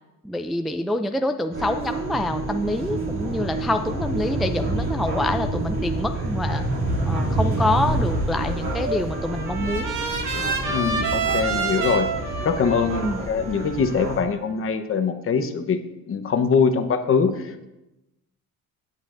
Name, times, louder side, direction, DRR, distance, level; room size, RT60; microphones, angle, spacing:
voice 1, 0.2-6.6 7.1-9.9 13.0-13.2, left 1 dB, ahead, 6 dB, 0.3 m, -26 dB
sound 1, 1.5-14.2, right 2 dB, 40° right, 2.9 m, -28 dB
Trumpet, 8.7-14.8, right 5 dB, 60° right, 2.1 m, -29 dB
voice 2, 10.7-12.1 12.4-15.8 16.1-17.7, left 5 dB, 40° left, 7 dB, 1.0 m, -23 dB
17.5 x 8.3 x 2.6 m, 0.96 s
cardioid pair, 120°, 32 cm